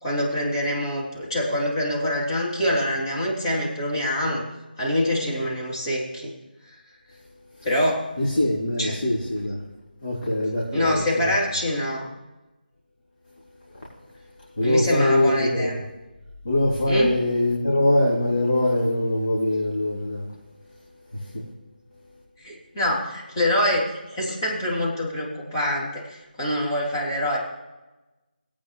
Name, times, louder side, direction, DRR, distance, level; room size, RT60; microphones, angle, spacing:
voice 1, 0.0-4.4 4.8-6.3 7.6-8.0 8.8-9.0 10.7-12.1 14.6-15.7 16.9-17.1 22.4-23.8 24.1-27.4, left 1 dB, 25° left, -6 dB, 3.3 m, -25 dB
voice 2, 8.2-9.6 10.0-11.3 14.6-15.8 16.4-20.3 21.1-21.4, left 1 dB, 60° left, -6 dB, 3.3 m, -23 dB
20.0 x 8.8 x 3.3 m, 1.1 s
figure-of-eight pair, 170°, 5 cm